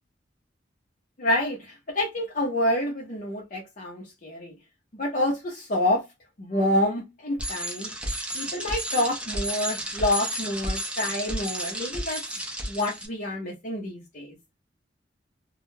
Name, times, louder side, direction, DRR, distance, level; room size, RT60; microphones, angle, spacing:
voice 1, 1.2-4.5 4.9-6.0 6.4-7.9 8.3-12.2 12.7-14.3, left 1 dB, 50° left, 0.6 m, -28 dB
Bicycle, 7.4-13.1, right 1 dB, 5° right, 0.5 m, -32 dB
2.3 x 2.1 x 3.0 m
head